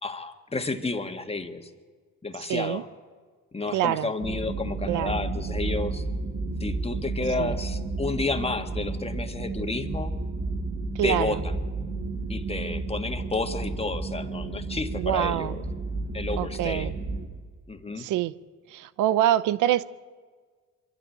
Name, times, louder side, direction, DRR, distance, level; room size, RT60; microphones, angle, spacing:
voice 1, 0.0-1.7 2.2-2.9 3.5-6.0 6.6-10.1 11.0-11.6 12.3-15.6 16.1-16.9 17.7-18.1, left 3 dB, 20° left, 1.7 m, -31 dB
voice 2, 2.5-2.8 3.7-4.1 4.9-5.1 7.4-7.5 11.0-11.4 15.0-15.5 16.4-16.9 18.0-18.3 18.7-19.8, right 13 dB, 90° right, 0.7 m, -25 dB
sound 1, 4.2-17.2, right 3 dB, 55° right, 7.6 m, -32 dB
23.5 x 13.0 x 9.1 m
cardioid pair, 90°, 30 cm